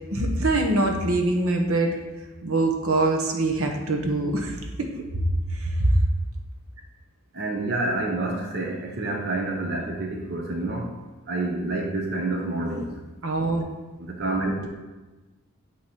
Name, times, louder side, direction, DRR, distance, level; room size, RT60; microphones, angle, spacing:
voice 1, 0.1-1.9 2.4-4.6 5.6-5.9 13.2-13.7, right 2 dB, 70° right, 2 dB, 1.0 m, -23 dB
voice 2, 7.3-10.9 11.3-12.9 14.0-14.7, right 2 dB, 50° right, -1 dB, 0.8 m, -28 dB
8.9 x 3.1 x 5.8 m, 1.2 s
head